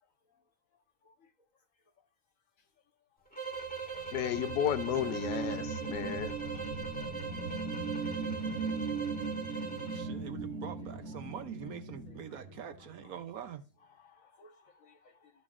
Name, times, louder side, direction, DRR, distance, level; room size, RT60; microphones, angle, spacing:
sound 1, 3.3-10.1, right 5 dB, 5° left, 1.5 m, -41 dB
sound 2, 3.8-13.0, right 4 dB, 50° right, 2.8 m, -39 dB
voice 1, 4.1-6.6, left 11 dB, 85° left, 1.2 m, -33 dB
voice 2, 9.9-13.6, right 8 dB, 65° right, 1.2 m, -44 dB
voice 3, 13.9-15.3, left 3 dB, 55° left, 1.5 m, -60 dB
12.5 x 6.4 x 2.4 m
omnidirectional pair, 1.7 m